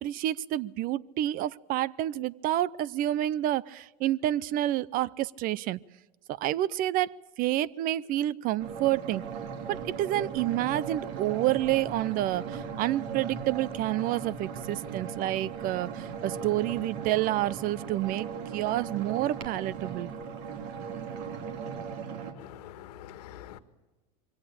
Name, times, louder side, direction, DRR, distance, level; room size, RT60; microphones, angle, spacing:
voice 1, 0.0-5.8 6.3-9.2 9.7-20.1, right 14 dB, 45° right, 0.6 m, -29 dB
sound 1, 8.6-22.3, right 6 dB, 60° right, 3.2 m, -38 dB
voice 2, 22.4-23.6, left 11 dB, 75° left, 1.8 m, -45 dB
23.5 x 17.5 x 8.6 m
supercardioid pair, 115°, 20 cm